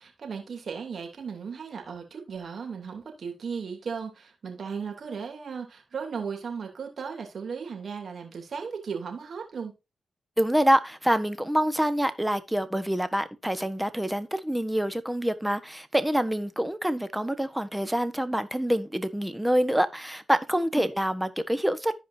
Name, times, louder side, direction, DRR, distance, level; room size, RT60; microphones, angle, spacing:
voice 1, 0.0-9.7 20.7-20.9, right 6 dB, 65° right, 3.0 m, -36 dB
voice 2, 10.4-21.9, equal, 10° right, 1.3 m, -26 dB
14.5 x 5.0 x 2.7 m
supercardioid pair, 45°, 0 cm